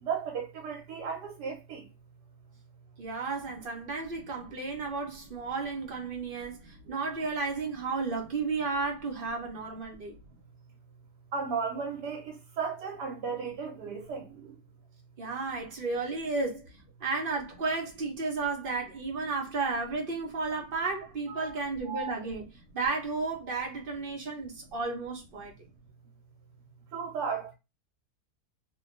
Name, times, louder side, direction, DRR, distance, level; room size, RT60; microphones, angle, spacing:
voice 1, 0.0-1.8 11.3-14.5 21.3-21.5 26.9-27.5, right 6 dB, 80° right, 1.3 m, -35 dB
voice 2, 3.0-10.2 15.2-16.6 17.0-22.5 22.7-25.5, right 4 dB, 45° right, 0.7 m, -33 dB
3.0 x 2.2 x 2.5 m
omnidirectional pair, 1.7 m